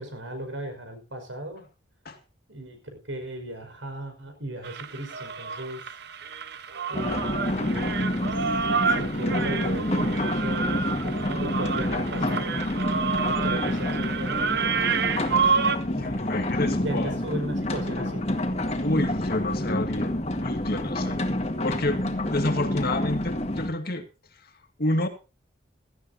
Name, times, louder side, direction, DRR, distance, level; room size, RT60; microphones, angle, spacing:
voice 1, 0.0-1.7 2.5-5.9 6.9-8.4 8.6-12.6 13.4-15.6 16.0-16.1 16.6-18.3, right 1 dB, 80° right, 5.6 m, -36 dB
sound 1, 4.6-15.8, right 5 dB, 60° right, 0.9 m, -29 dB
sound 2, 6.9-23.7, left 1 dB, 35° left, 2.0 m, -28 dB
voice 2, 16.0-17.2 18.7-21.2 21.6-24.1 24.8-25.1, left 1 dB, 55° left, 2.2 m, -29 dB
17.0 x 14.0 x 2.8 m
head